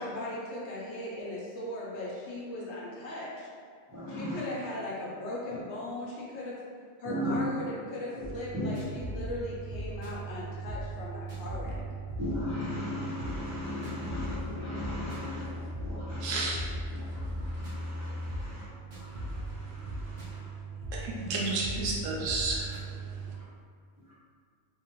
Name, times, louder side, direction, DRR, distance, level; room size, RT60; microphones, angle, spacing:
voice 1, 0.0-3.5 4.1-6.6 7.0-11.8, left 1 dB, 65° left, 0.9 m, -38 dB
voice 2, 3.9-4.4 7.0-7.4 8.5-8.7 11.6-11.7 12.2-16.4 16.9-18.7 18.9-20.5, left 1 dB, 30° right, 0.3 m, -38 dB
sound 1, 8.2-23.4, right 1 dB, 55° right, 0.7 m, -38 dB
voice 3, 16.2-16.6 20.9-22.8, right 3 dB, 85° right, 0.9 m, -31 dB
2.6 x 2.0 x 2.9 m
omnidirectional pair, 1.3 m